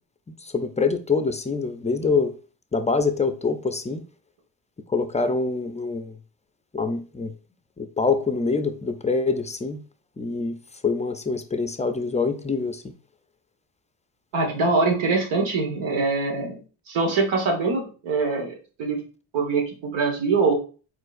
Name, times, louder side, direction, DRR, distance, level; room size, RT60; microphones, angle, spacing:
voice 1, 0.5-2.3 2.7-4.0 4.9-6.1 6.7-7.3 7.8-9.8 10.2-10.6 10.8-12.8, left 4 dB, 15° left, 0.4 m, -25 dB
voice 2, 14.3-19.0 19.3-20.6, right 3 dB, 90° right, 1.5 m, -23 dB
4.5 x 4.2 x 2.5 m
cardioid pair, 85°, 46 cm